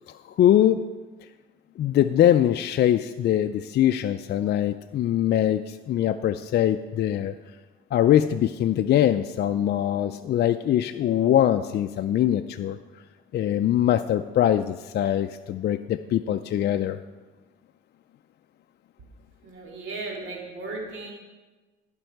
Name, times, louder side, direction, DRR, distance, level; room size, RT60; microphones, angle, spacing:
voice 1, 0.4-0.8 1.8-7.3 7.9-12.8 13.3-17.0, left 11 dB, 60° left, 8 dB, 0.4 m, -22 dB
voice 2, 19.4-21.1, right 3 dB, 75° right, -1 dB, 2.3 m, -36 dB
16.0 x 5.3 x 4.6 m, 1.2 s
cardioid pair, 90°, 20 cm